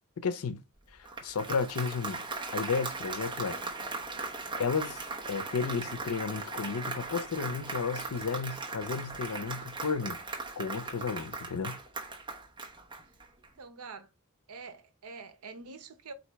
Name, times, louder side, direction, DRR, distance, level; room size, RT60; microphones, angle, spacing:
voice 1, 0.2-0.6 1.2-2.2 2.5-3.6 4.6-10.2 10.6-11.8, left 5 dB, 90° left, 0.6 m, -33 dB
Applause, 0.9-13.5, right 3 dB, 20° right, 0.8 m, -38 dB
voice 2, 13.6-14.1 14.5-16.1, right 4 dB, 90° right, 0.7 m, -46 dB
4.1 x 2.6 x 4.5 m
head